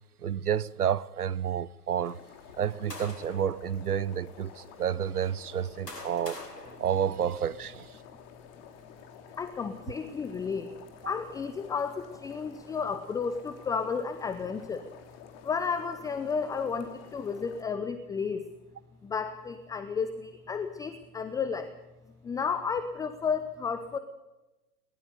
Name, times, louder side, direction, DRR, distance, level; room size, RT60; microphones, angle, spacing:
voice 1, 0.2-2.2 2.6-6.4 6.8-8.0 11.0-11.1, right 9 dB, 70° right, 1.0 m, -30 dB
sound 1, 2.0-17.6, left 8 dB, 30° left, 2.9 m, -51 dB
sound 2, 2.4-3.6 4.3-4.4 5.3-7.7, left 1 dB, 85° left, 4.8 m, -45 dB
voice 2, 9.4-10.7 11.0-14.9 15.4-18.4 19.0-21.7 22.2-24.0, left 5 dB, 5° left, 0.8 m, -32 dB
21.5 x 20.5 x 6.8 m
figure-of-eight pair, 110°, 47 cm